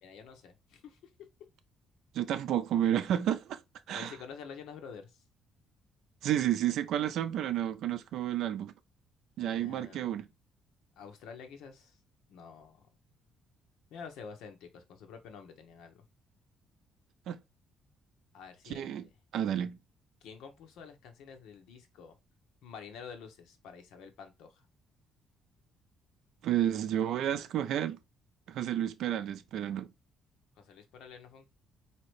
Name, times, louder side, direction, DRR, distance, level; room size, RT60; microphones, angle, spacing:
voice 1, 0.0-1.1 3.9-5.2 9.5-10.2 11.0-12.0 12.3-12.8 13.9-16.0 18.3-18.9 20.2-22.1 22.6-24.7 30.6-31.5, left 6 dB, 85° left, 1.0 m, -48 dB
voice 2, 2.1-3.6 3.9-4.1 6.2-8.7 9.4-10.2 17.3-17.4 18.7-19.1 19.3-19.8 26.4-28.0 28.5-29.9, right 11 dB, 65° right, 0.5 m, -31 dB
4.3 x 2.9 x 3.2 m
cardioid pair, 170°, 0 cm